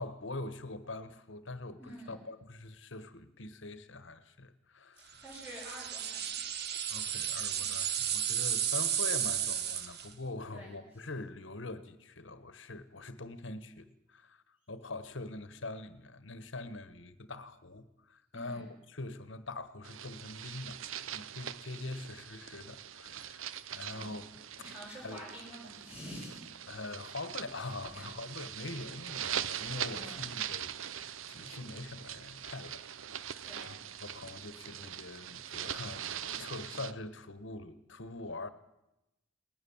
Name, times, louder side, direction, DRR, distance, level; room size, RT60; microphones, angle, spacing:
voice 1, 0.0-5.2 6.9-20.8 21.1-24.2 24.6-24.7 25.0-25.2 26.7-32.8 33.1-38.5, left 2 dB, 70° left, 1.5 m, -44 dB
voice 2, 1.8-2.2 5.0-6.4 7.5-7.7 10.5-10.7 18.3-18.7 23.9-24.1 24.6-26.4 27.9-28.0 29.9-30.3 33.4-33.7, equal, 10° right, 7.0 m, -48 dB
sound 1, 5.3-10.1, right 9 dB, 50° right, 1.5 m, -33 dB
sound 2, 19.8-36.9, right 10 dB, 80° right, 0.8 m, -42 dB
20.0 x 20.0 x 7.3 m
head